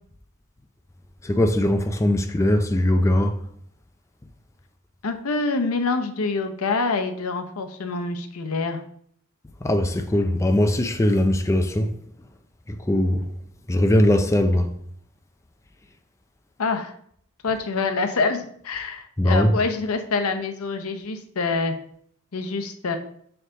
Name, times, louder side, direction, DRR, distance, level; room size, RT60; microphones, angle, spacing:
voice 1, 1.2-3.4 9.6-11.9 12.7-13.2 13.7-14.7 19.2-19.5, left 1 dB, 15° left, 0.4 m, -20 dB
voice 2, 5.0-8.8 16.6-16.9 17.4-21.7 22.3-23.0, left 3 dB, 85° left, 0.7 m, -26 dB
6.5 x 4.7 x 3.7 m
head